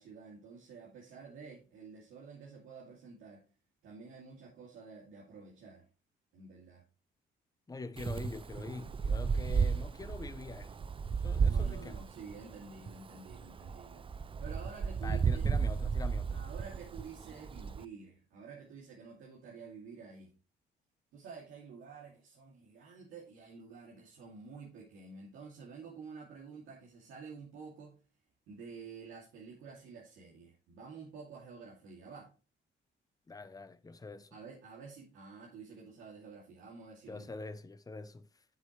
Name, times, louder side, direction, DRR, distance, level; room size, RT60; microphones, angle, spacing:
voice 1, 0.0-3.4 3.8-5.9 6.3-6.8 11.5-15.4 16.3-20.3 21.1-28.0 28.5-32.3 34.3-37.2, right 5 dB, 85° right, 2.5 m, -50 dB
voice 2, 7.7-10.8 11.2-12.0 15.0-16.4 33.3-34.3 37.1-38.4, left 3 dB, 20° left, 0.8 m, -45 dB
Wind, 8.0-17.8, right 6 dB, 25° right, 0.4 m, -33 dB
9.7 x 7.5 x 3.2 m
cardioid pair, 90°, 20 cm